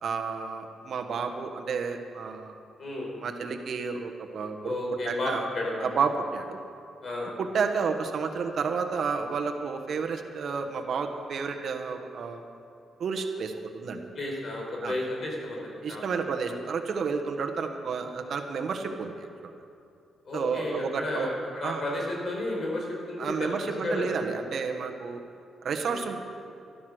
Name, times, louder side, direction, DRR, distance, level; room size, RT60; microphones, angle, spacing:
voice 1, 0.0-2.5 3.2-4.7 5.0-5.4 5.8-6.6 7.4-12.4 13.0-14.0 14.8-15.0 15.8-19.5 20.3-21.3 21.6-21.8 23.2-25.2 25.6-26.2, right 5 dB, 65° right, 4 dB, 1.3 m, -31 dB
voice 2, 2.8-3.1 4.6-5.9 7.0-7.3 14.1-16.1 20.2-24.0 25.8-26.0, left 1 dB, 55° left, -1 dB, 4.5 m, -32 dB
13.0 x 12.0 x 6.5 m, 2.6 s
cardioid pair, 75°, 0 cm